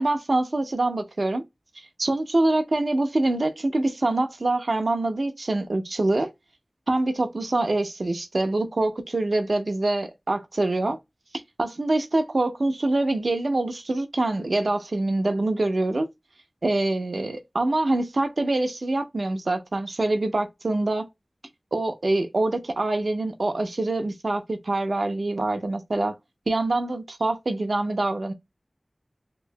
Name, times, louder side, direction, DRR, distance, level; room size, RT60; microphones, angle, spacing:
voice 1, 0.0-1.4 1.8-6.3 6.9-11.0 11.6-16.1 16.6-21.1 21.7-26.2 26.5-28.3, right 2 dB, 75° right, 0.6 m, -25 dB
3.0 x 2.7 x 3.2 m
wide cardioid pair, 55°, 0 cm